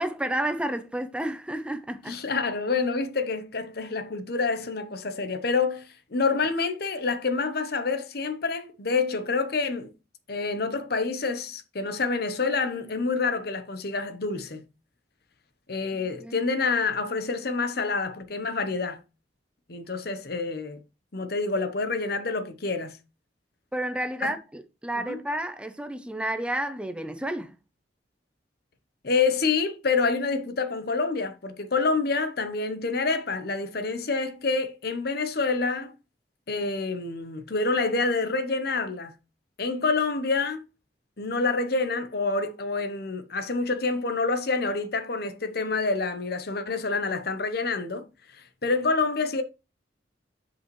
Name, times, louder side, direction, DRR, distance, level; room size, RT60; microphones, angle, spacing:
voice 1, 0.0-2.2 15.9-16.4 23.7-27.6, right 1 dB, 5° right, 0.6 m, -31 dB
voice 2, 2.1-9.9 10.3-14.6 15.7-19.0 19.7-20.8 21.1-23.0 24.2-24.3 25.1-25.2 29.0-35.9 36.5-39.1 39.6-40.6 41.2-48.1 48.3-49.4, left 4 dB, 55° left, 0.9 m, -27 dB
7.9 x 5.5 x 3.1 m
head